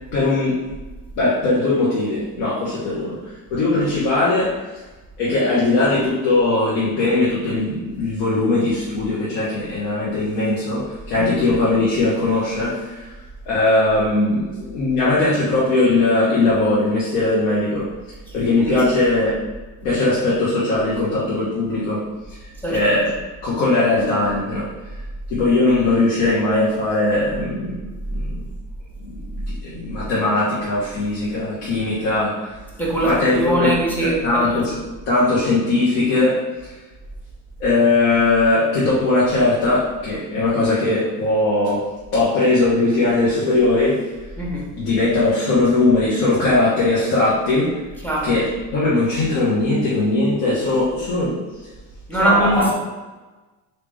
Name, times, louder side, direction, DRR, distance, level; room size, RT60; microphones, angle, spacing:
voice 1, 0.1-0.6 1.2-4.6 5.2-13.1 13.5-17.9 18.3-19.4 19.8-22.4 22.7-24.7 25.3-28.5 29.0-32.5 33.0-34.8 35.1-36.7 37.6-44.1 44.7-47.8 48.2-51.4 52.2-52.7, left 2 dB, 75° left, -8 dB, 1.2 m, -20 dB
voice 2, 32.8-34.2 44.4-44.7 48.0-48.3 52.1-52.7, right 1 dB, 5° left, -4 dB, 1.2 m, -21 dB
3.5 x 2.8 x 3.4 m, 1.2 s
supercardioid pair, 90°, 41 cm